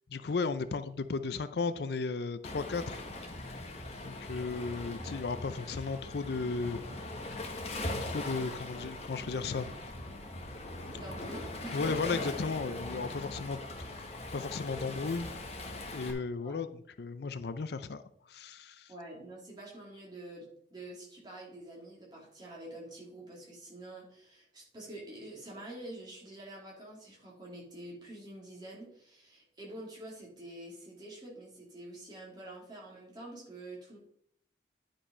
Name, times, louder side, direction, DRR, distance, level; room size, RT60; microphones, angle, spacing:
voice 1, 0.1-3.0 4.0-6.8 8.0-9.8 11.7-14.1 14.3-15.3 15.9-18.9, left 4 dB, 60° left, 12 dB, 0.5 m, -35 dB
Waves surf, 2.4-16.1, left 2 dB, 35° left, 1.3 m, -40 dB
voice 2, 10.9-11.9 16.4-16.6 18.9-34.0, right 1 dB, 25° right, -4 dB, 3.2 m, -47 dB
10.0 x 5.2 x 5.4 m, 0.70 s
head